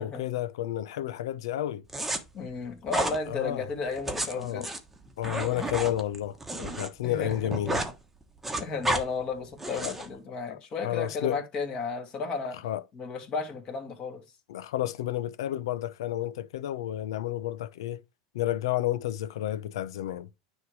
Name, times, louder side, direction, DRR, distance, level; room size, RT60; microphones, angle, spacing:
voice 1, 0.0-1.8 3.3-3.7 4.3-4.7 5.2-7.8 9.8-9.9 10.5-11.4 12.6-12.8 14.5-18.0 18.3-20.3, left 13 dB, 85° left, 0.7 m, -31 dB
sound 1, 1.9-2.2 2.9-3.2 3.9-6.9 7.2-7.9 8.2-9.0 9.6-10.1, right 2 dB, 5° right, 1.2 m, -31 dB
voice 2, 2.3-4.7 7.0-7.5 8.6-12.6 12.9-14.2, left 4 dB, 35° left, 2.3 m, -33 dB
9.5 x 3.2 x 4.8 m
supercardioid pair, 135°, 3 cm